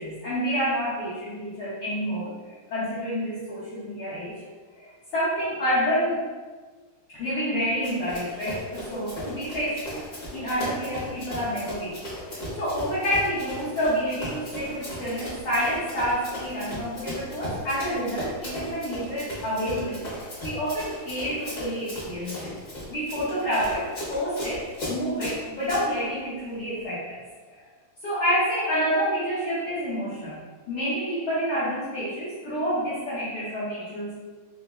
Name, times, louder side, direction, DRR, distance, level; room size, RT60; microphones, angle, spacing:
voice 1, 0.0-4.3 4.8-6.3 7.1-9.9 10.3-12.0 12.2-22.5 22.9-27.2 27.5-27.6 28.0-30.4 30.7-34.1, equal, 75° left, -11 dB, 1.2 m, -28 dB
Run, 7.8-25.8, left 1 dB, 55° left, 0.9 m, -37 dB
5.1 x 2.9 x 2.3 m, 1.4 s
omnidirectional pair, 3.7 m